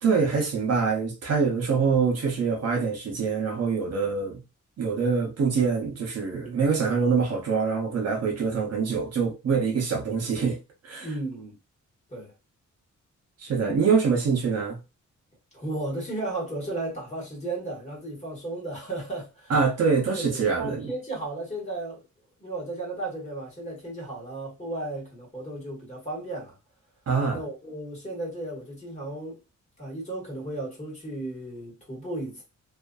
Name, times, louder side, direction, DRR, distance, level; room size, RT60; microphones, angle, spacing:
voice 1, 0.0-4.4 4.8-10.6 10.8-11.1 13.4-14.8 19.5-20.9 27.1-27.4, right 5 dB, 55° right, 0.7 m, -25 dB
voice 2, 11.0-11.6 12.1-12.3 15.5-19.5 20.2-22.0 22.4-26.6 27.3-29.4 29.8-32.4, right 2 dB, 25° left, 1.3 m, -34 dB
2.5 x 2.5 x 2.2 m
wide cardioid pair, 160°, 30 cm